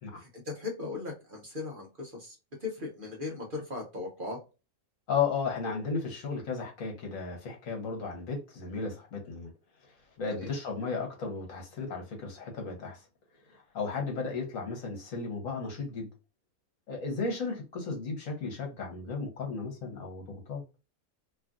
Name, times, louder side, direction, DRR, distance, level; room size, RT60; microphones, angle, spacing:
voice 1, 0.1-4.4 10.3-10.5, left 3 dB, 45° right, 0.9 m, -38 dB
voice 2, 5.1-9.5 9.9-13.1 13.5-16.1 16.9-20.6, left 4 dB, 70° left, 1.4 m, -34 dB
3.0 x 2.5 x 2.3 m
omnidirectional pair, 1.5 m